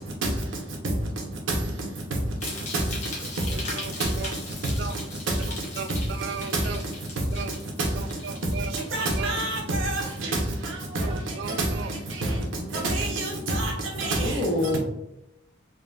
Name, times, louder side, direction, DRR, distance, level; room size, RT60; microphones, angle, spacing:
sound 1, 2.4-10.7 11.0-11.5 12.0-12.1, left 2 dB, 35° left, 0.9 m, -39 dB
voice 1, 6.2-6.8 7.4-7.5 8.2-8.7 9.2-9.4 11.0-11.9, right 6 dB, 65° right, 0.3 m, -35 dB
voice 2, 8.9-10.3 11.5-11.6 12.7-13.7 14.0-14.2, right 2 dB, 85° right, 0.8 m, -27 dB
voice 3, 12.1-12.8 14.1-14.8, left 1 dB, 85° left, 0.9 m, -29 dB
3.8 x 2.2 x 2.3 m
head